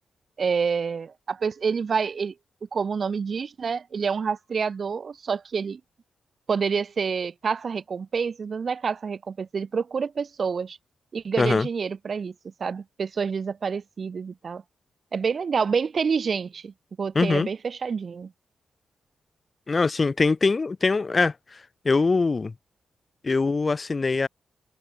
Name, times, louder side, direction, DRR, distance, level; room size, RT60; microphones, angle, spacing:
voice 1, 0.4-2.3 2.7-5.8 6.5-10.8 11.1-14.6 15.1-18.3, right 5 dB, 45° right, 0.3 m, -28 dB
voice 2, 11.4-11.7 17.1-17.5 19.7-22.5 23.2-24.3, left 4 dB, 30° left, 0.6 m, -23 dB
wide cardioid pair, 135°, 0 cm